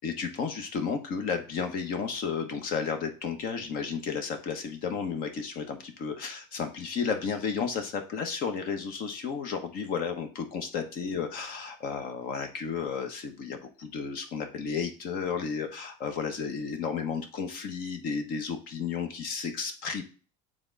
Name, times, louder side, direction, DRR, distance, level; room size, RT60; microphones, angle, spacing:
voice 1, 0.0-20.0, left 6 dB, 55° left, 6 dB, 1.2 m, -33 dB
7.0 x 3.8 x 4.0 m, 0.35 s
supercardioid pair, 120°, 18 cm